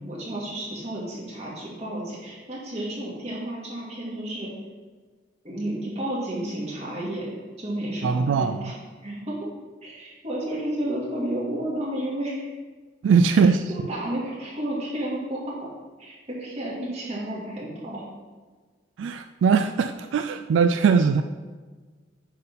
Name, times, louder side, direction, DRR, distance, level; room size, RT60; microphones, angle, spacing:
voice 1, 0.0-4.5 5.4-7.3 7.6-8.7 9.0-9.3 9.8-12.5 13.7-15.6 16.0-18.0, right 1 dB, 35° right, -6 dB, 2.5 m, -31 dB
voice 2, 8.0-8.7 13.0-13.7 19.0-21.2, right 5 dB, 85° right, 9 dB, 0.3 m, -20 dB
9.4 x 4.0 x 5.6 m, 1.4 s
head